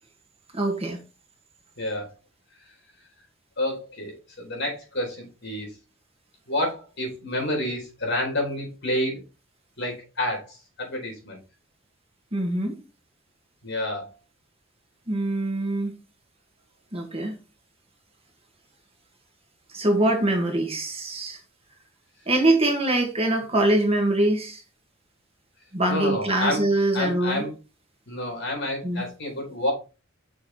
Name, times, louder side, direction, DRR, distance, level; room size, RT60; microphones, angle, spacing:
voice 1, 0.5-1.0 12.3-12.7 15.1-15.9 16.9-17.3 19.7-21.4 22.3-24.6 25.7-27.4 28.8-29.0, right 1 dB, 30° right, 2 dB, 1.7 m, -23 dB
voice 2, 1.8-2.1 3.6-5.7 6.5-9.2 9.8-10.4 10.8-11.4 13.6-14.1 25.9-26.6 26.9-27.5 28.1-29.7, left 1 dB, 60° left, 1 dB, 3.7 m, -29 dB
6.4 x 4.7 x 4.3 m, 0.31 s
head